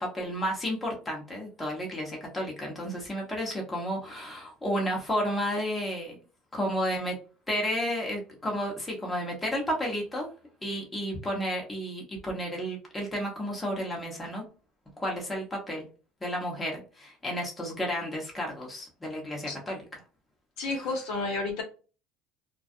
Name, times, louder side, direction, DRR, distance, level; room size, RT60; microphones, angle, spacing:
voice 1, 0.0-6.2 6.5-7.2 7.5-10.3 10.6-14.4 15.0-15.8 16.2-19.8 20.6-20.9, equal, 10° left, -1 dB, 1.0 m, -32 dB
voice 2, 20.6-21.6, left 3 dB, 65° left, 1 dB, 0.9 m, -30 dB
2.3 x 2.2 x 2.6 m, 0.35 s
supercardioid pair, 125°, 0 cm